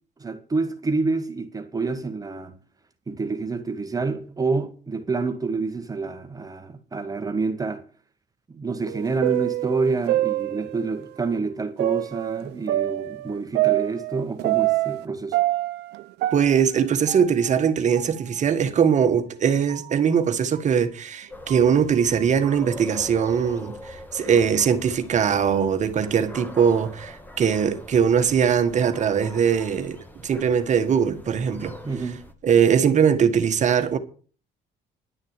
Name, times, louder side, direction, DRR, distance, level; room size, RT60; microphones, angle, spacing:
voice 1, 0.2-2.5 3.1-7.8 8.5-15.4 31.8-32.2, right 4 dB, 20° right, 1.7 m, -28 dB
sound 1, 8.9-11.0 11.8-15.0 15.3-17.7 18.0-18.1 18.8-18.9 19.7-19.9 20.5-20.6 21.5-21.8, right 17 dB, 85° right, 0.9 m, -26 dB
voice 2, 16.3-31.7 32.4-34.0, right 7 dB, 45° right, 1.6 m, -21 dB
sound 2, 21.3-32.3, left 1 dB, 10° left, 1.7 m, -42 dB
11.5 x 6.5 x 8.9 m
cardioid pair, 110°, 17 cm